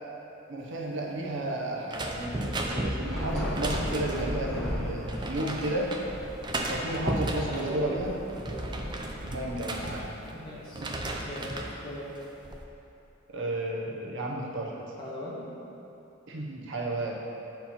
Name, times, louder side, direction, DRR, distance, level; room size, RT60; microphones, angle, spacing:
voice 1, 0.5-5.9 6.7-8.2 9.2-10.2 10.8-10.9 13.3-14.9 16.3-17.2, right 1 dB, 65° right, -1 dB, 0.9 m, -33 dB
sound 1, 1.9-4.4 5.1-6.0 6.4-7.7 8.2-10.4 10.7-11.8 12.2-12.6, right 1 dB, 20° right, 0.5 m, -34 dB
Thunder / Rain, 3.0-10.5, equal, ahead, 1.0 m, -36 dB
voice 2, 7.4-8.0 8.5-8.8 10.3-10.9 11.2-11.5 11.8-12.1 15.0-15.4, equal, 20° left, -8 dB, 1.7 m, -39 dB
7.2 x 4.5 x 5.7 m, 2.9 s
head